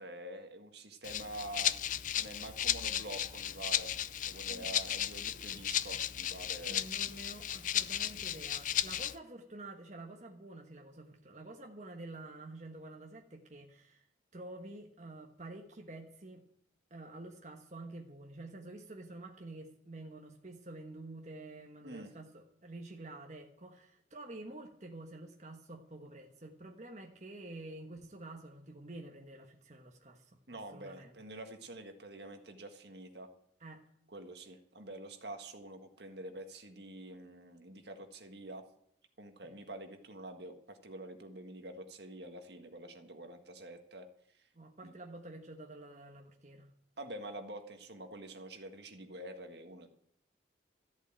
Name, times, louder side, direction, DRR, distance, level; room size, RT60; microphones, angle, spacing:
voice 1, 0.0-1.7 2.2-3.9 4.2-6.9 21.8-22.1 30.5-33.3 34.1-38.6 39.2-44.1 44.8-44.9 47.0-49.9, right 1 dB, 65° right, 6 dB, 1.7 m, -47 dB
Rattle (instrument), 1.0-9.1, left 10 dB, 45° left, 0.5 m, -35 dB
voice 2, 6.7-14.0 14.3-16.4 16.9-31.1 33.6-33.8 39.4-39.5 44.5-46.7, right 2 dB, 40° right, 2 dB, 1.3 m, -49 dB
14.0 x 8.0 x 8.9 m, 0.68 s
head